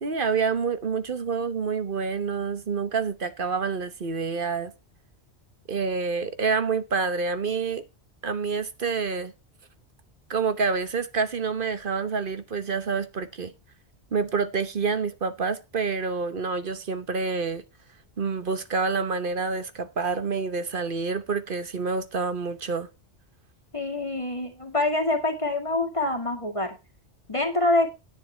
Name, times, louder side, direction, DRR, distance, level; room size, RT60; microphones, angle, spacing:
voice 1, 0.0-4.7 5.7-7.8 8.2-9.3 10.3-13.5 14.1-17.6 18.2-22.9, right 5 dB, 50° right, 1.2 m, -27 dB
voice 2, 23.7-26.7 27.3-27.9, left 2 dB, 30° left, 2.1 m, -25 dB
10.0 x 9.7 x 4.4 m
omnidirectional pair, 1.2 m